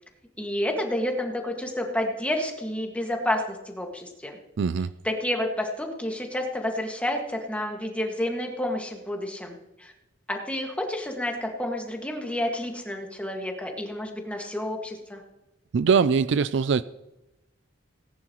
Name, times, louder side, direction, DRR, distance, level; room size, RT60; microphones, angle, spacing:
voice 1, 0.4-4.4 5.0-9.9 10.3-15.2, left 1 dB, 5° left, 1.9 m, -30 dB
voice 2, 4.6-4.9 15.7-16.8, right 5 dB, 65° right, 0.4 m, -22 dB
18.5 x 10.5 x 3.1 m
head